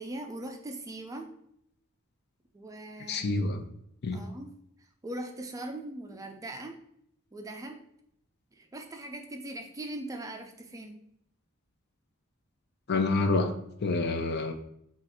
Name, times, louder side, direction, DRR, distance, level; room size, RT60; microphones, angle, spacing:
voice 1, 0.0-1.3 2.5-3.4 4.1-4.5 4.8-6.8 7.3-7.8 8.5-11.0, right 1 dB, 15° right, 5 dB, 0.4 m, -40 dB
voice 2, 3.1-3.6 4.0-4.3 12.9-13.5 13.8-14.5, left 3 dB, 50° left, 6 dB, 0.5 m, -27 dB
6.1 x 2.5 x 2.9 m, 0.72 s
head